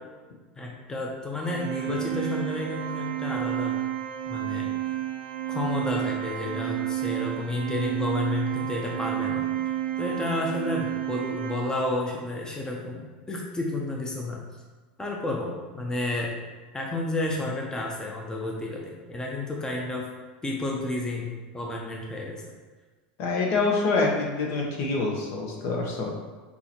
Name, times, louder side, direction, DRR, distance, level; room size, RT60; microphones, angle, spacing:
voice 1, 0.6-3.8 4.3-4.7 5.5-9.5 10.0-14.4 15.0-16.4 16.7-20.1 20.4-22.4, left 2 dB, 15° left, -1 dB, 0.7 m, -31 dB
Organ, 1.4-12.2, right 13 dB, 65° right, 0.5 m, -31 dB
voice 2, 23.2-26.1, left 3 dB, 60° left, 0 dB, 1.1 m, -26 dB
6.0 x 2.8 x 3.0 m, 1.3 s
hypercardioid pair, 100°, 5 cm